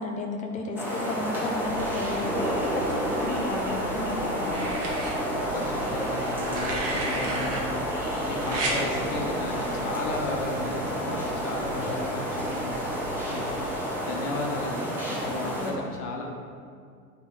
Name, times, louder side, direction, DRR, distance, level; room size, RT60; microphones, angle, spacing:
voice 1, 0.0-4.7 15.4-16.0, left 2 dB, 15° left, 2 dB, 0.6 m, -33 dB
sound 1, 0.7-15.7, equal, 5° right, 1.7 m, -30 dB
sound 2, 1.6-13.8, equal, 75° left, 1.3 m, -42 dB
sound 3, 3.2-3.9 4.5-5.1 6.3-7.6 8.5-8.8 10.2-10.4, right 2 dB, 30° right, 1.3 m, -33 dB
voice 2, 5.3-13.5 14.0-16.2, left 3 dB, 50° left, 0 dB, 1.4 m, -35 dB
9.0 x 3.6 x 3.8 m, 2.1 s
figure-of-eight pair, 95°, 47 cm